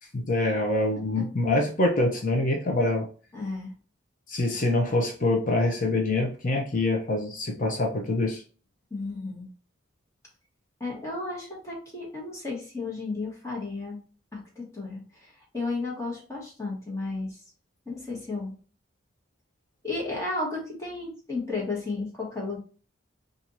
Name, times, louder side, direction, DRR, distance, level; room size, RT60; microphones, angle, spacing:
voice 1, 0.1-3.1 4.3-8.4, left 2 dB, 40° left, 1 dB, 0.7 m, -25 dB
voice 2, 3.3-3.7 8.9-9.5 10.8-14.0 14.3-17.4 17.9-18.6 19.8-22.6, left 3 dB, 15° left, -4 dB, 1.3 m, -33 dB
4.4 x 2.6 x 2.6 m, 0.38 s
head